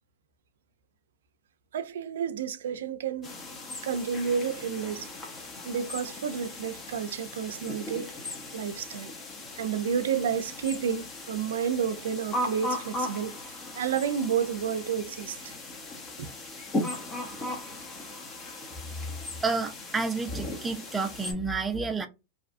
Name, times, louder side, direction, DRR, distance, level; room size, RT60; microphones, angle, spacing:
voice 1, 1.7-3.3 3.8-5.1 5.6-8.1 8.5-9.1 9.5-15.6 16.2-16.3, right 7 dB, 85° right, 0.4 m, -30 dB
sound 1, 3.2-21.3, left 1 dB, 25° left, 0.7 m, -38 dB
voice 2, 19.4-22.1, right 4 dB, 15° right, 0.4 m, -30 dB
2.7 x 2.3 x 2.5 m
supercardioid pair, 135°, 0 cm